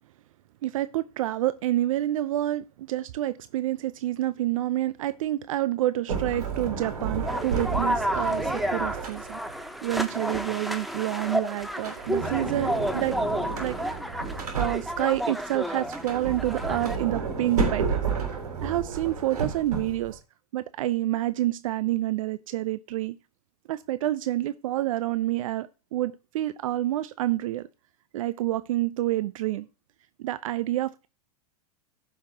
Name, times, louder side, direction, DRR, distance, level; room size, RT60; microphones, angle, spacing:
voice 1, 0.6-9.4 9.8-13.2 13.6-13.8 14.6-18.0 18.6-20.2 20.5-23.1 23.7-27.6 28.1-29.7 30.2-31.1, right 14 dB, 60° right, 0.6 m, -28 dB
Sliding door, 6.1-9.6 11.7-15.2 15.8-20.2, right 5 dB, 75° right, 3.7 m, -31 dB
sound 1, 7.3-17.0, equal, ahead, 0.9 m, -31 dB
15.5 x 5.8 x 2.8 m
figure-of-eight pair, 100°, 20 cm